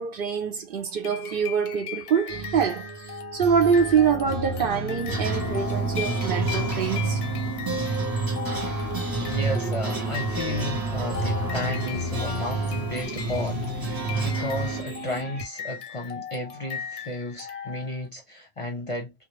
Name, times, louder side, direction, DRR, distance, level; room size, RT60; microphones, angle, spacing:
voice 1, 0.0-7.2, right 6 dB, 60° right, 0.8 m, -25 dB
sound 1, 1.0-18.1, left 8 dB, 90° left, 0.8 m, -39 dB
sound 2, 2.3-15.5, right 1 dB, 90° right, 0.9 m, -34 dB
sound 3, 5.1-14.8, right 3 dB, 25° right, 0.6 m, -29 dB
voice 2, 9.2-19.1, left 1 dB, 35° left, 0.6 m, -33 dB
2.4 x 2.0 x 2.9 m
omnidirectional pair, 1.1 m